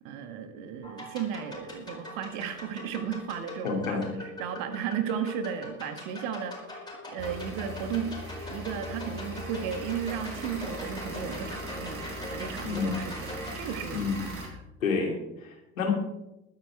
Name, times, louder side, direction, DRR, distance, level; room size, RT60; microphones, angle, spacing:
voice 1, 0.0-8.2 8.5-14.3, right 8 dB, 50° right, 8 dB, 1.9 m, -35 dB
sound 1, 0.8-13.5, left 2 dB, 10° left, 4.6 m, -42 dB
voice 2, 3.6-4.2 12.6-13.0 13.9-14.2 14.8-15.9, left 5 dB, 75° left, 1 dB, 3.0 m, -29 dB
sound 2, 7.2-14.5, right 1 dB, 35° right, 4.3 m, -39 dB
22.0 x 9.4 x 3.5 m, 0.94 s
figure-of-eight pair, 75°, 41 cm